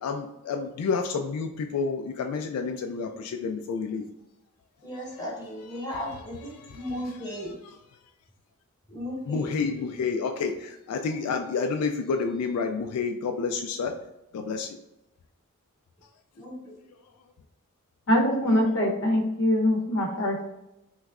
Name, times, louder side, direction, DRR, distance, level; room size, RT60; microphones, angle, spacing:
voice 1, 0.0-4.0 6.7-6.8 9.3-13.9 14.3-14.7, left 5 dB, 85° left, 6 dB, 0.3 m, -29 dB
voice 2, 4.8-7.6 8.9-9.6 16.4-16.8 18.4-18.6, left 1 dB, 20° left, -4 dB, 1.1 m, -36 dB
voice 3, 18.1-20.5, left 1 dB, 60° left, -1 dB, 0.7 m, -23 dB
3.5 x 3.0 x 2.3 m, 0.89 s
head